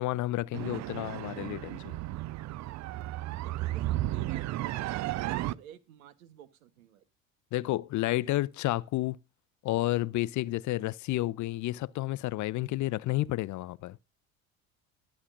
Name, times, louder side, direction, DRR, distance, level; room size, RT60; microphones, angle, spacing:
voice 1, 0.0-2.0 7.5-9.2 9.6-14.0, left 17 dB, 45° left, 0.5 m, -31 dB
sound 1, 0.5-5.5, right 15 dB, 45° right, 0.5 m, -34 dB
voice 2, 3.4-7.1, right 11 dB, 80° right, 1.2 m, -51 dB
21.0 x 7.3 x 2.5 m
hypercardioid pair, 65°, 41 cm